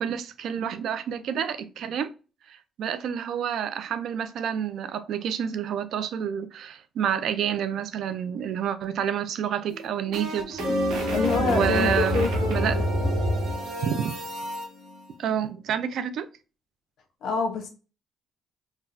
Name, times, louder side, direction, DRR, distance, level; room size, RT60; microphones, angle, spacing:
voice 1, 0.0-2.1 2.5-10.6 11.4-12.2 12.5-12.8 13.8-14.2 15.2-16.3, right 8 dB, 75° right, 0.4 m, -29 dB
sound 1, 9.7-14.7, equal, 90° right, 0.9 m, -28 dB
sound 2, 10.6-15.4, left 1 dB, 40° left, 0.6 m, -32 dB
voice 2, 11.1-13.1 17.2-17.7, left 5 dB, 75° left, 0.8 m, -27 dB
3.7 x 2.3 x 2.6 m
cardioid pair, 90°, 0 cm